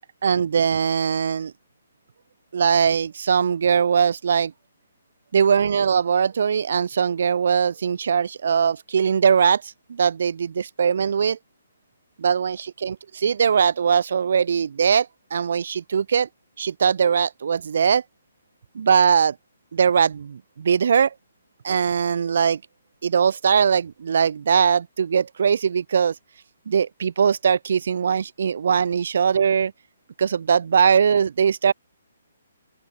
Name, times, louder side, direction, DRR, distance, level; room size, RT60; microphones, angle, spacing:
voice 1, 0.2-1.5 2.5-4.5 5.3-11.4 12.2-16.3 16.6-18.0 18.7-19.4 19.7-21.1 21.6-22.6 23.0-26.2 26.7-29.7 30.2-31.7, right 7 dB, 55° right, 2.6 m, -21 dB
open air
hypercardioid pair, 170°, 0 cm